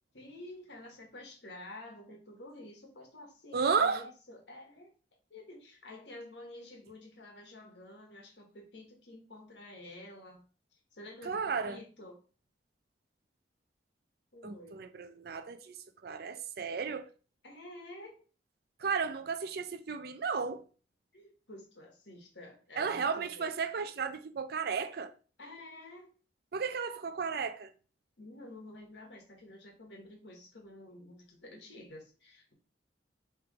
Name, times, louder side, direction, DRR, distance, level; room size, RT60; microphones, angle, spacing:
voice 1, 0.1-4.9 5.3-10.4 10.7-12.2 14.3-14.9 17.4-18.2 21.1-23.5 25.4-26.1 28.2-32.5, left 1 dB, 80° left, 1.5 m, -50 dB
voice 2, 3.5-4.1 11.2-11.8 14.4-17.1 18.8-20.7 22.8-25.1 26.5-27.7, right 5 dB, 60° right, 0.5 m, -33 dB
3.5 x 3.1 x 4.8 m
head